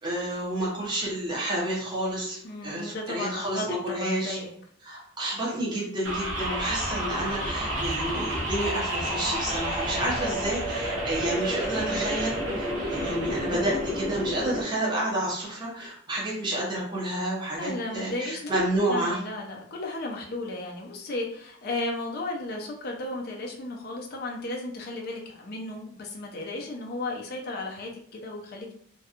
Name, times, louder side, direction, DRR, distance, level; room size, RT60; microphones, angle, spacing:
voice 1, 0.0-4.4 4.8-19.2, right 1 dB, 20° right, -5 dB, 0.6 m, -30 dB
voice 2, 2.4-4.5 17.6-18.5 18.9-28.7, left 2 dB, 50° left, 0 dB, 0.5 m, -34 dB
sound 1, 6.0-14.6, right 1 dB, 70° right, 0.7 m, -30 dB
2.7 x 2.2 x 2.4 m, 0.62 s
head